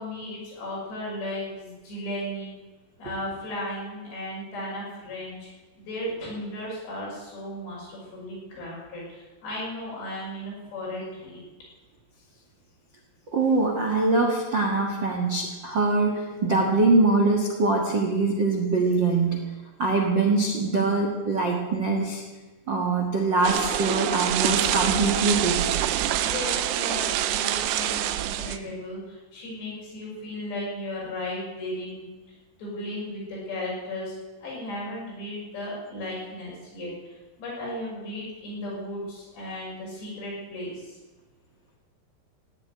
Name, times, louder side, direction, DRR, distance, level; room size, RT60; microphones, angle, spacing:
voice 1, 0.0-2.5 3.0-5.5 5.8-11.4 26.2-34.2 34.4-36.9 37.4-41.0, left 1 dB, 80° left, -5 dB, 8.8 m, -35 dB
voice 2, 13.3-19.4 19.8-22.2 22.7-25.6, right 3 dB, 55° right, 0 dB, 1.2 m, -23 dB
sound 1, 23.4-28.6, right 12 dB, 85° right, 3.0 m, -26 dB
17.0 x 7.6 x 9.9 m, 1.2 s
omnidirectional pair, 4.9 m